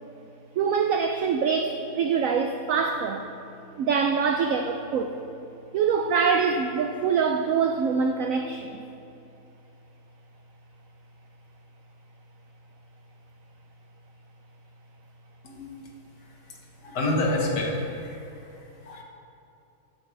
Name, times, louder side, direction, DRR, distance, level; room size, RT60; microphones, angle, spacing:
voice 1, 0.6-3.3 3.8-5.2 5.7-8.8, right 6 dB, 90° right, 4 dB, 0.7 m, -24 dB
voice 2, 16.8-18.2 18.8-19.0, left 1 dB, 65° left, 0 dB, 1.8 m, -27 dB
12.5 x 8.6 x 3.3 m, 2.7 s
omnidirectional pair, 2.0 m